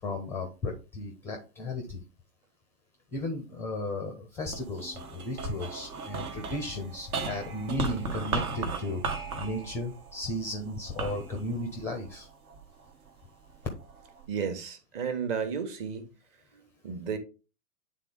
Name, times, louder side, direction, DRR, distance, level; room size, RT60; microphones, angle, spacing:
voice 1, 0.0-2.0 3.1-9.0 9.4-12.3, left 1 dB, 5° left, 0.6 m, -35 dB
sound 1, 4.4-12.9 13.5-14.2, right 3 dB, 60° right, 1.5 m, -36 dB
voice 2, 14.3-16.1 16.5-17.2, right 6 dB, 30° right, 1.3 m, -33 dB
9.0 x 3.7 x 3.7 m
figure-of-eight pair, 105°, 49 cm